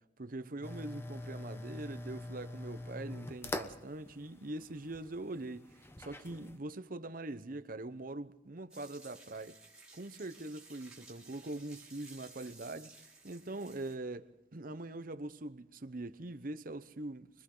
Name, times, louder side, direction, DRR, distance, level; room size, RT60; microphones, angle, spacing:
voice 1, 0.2-9.6 9.9-17.3, right 2 dB, 50° right, 0.9 m, -43 dB
sound 1, 0.6-6.6, left 1 dB, 15° left, 1.0 m, -44 dB
sound 2, 8.7-14.0, right 3 dB, 5° right, 3.4 m, -56 dB
29.0 x 23.0 x 3.9 m
head